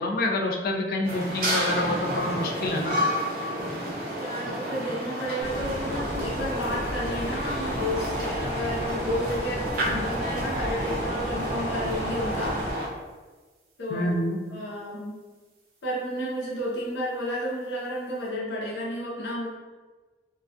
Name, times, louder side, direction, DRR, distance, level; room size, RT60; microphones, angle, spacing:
voice 1, 0.0-3.0 13.9-14.4, left 1 dB, 55° left, 1 dB, 0.3 m, -27 dB
sound 1, 1.0-12.9, equal, 50° right, 0.5 m, -30 dB
voice 2, 4.1-12.9 13.8-14.1 14.5-15.2 15.8-19.5, equal, 75° left, -5 dB, 0.7 m, -32 dB
sound 2, 5.4-12.7, equal, 15° left, 0.7 m, -35 dB
2.3 x 2.3 x 2.4 m, 1.3 s
head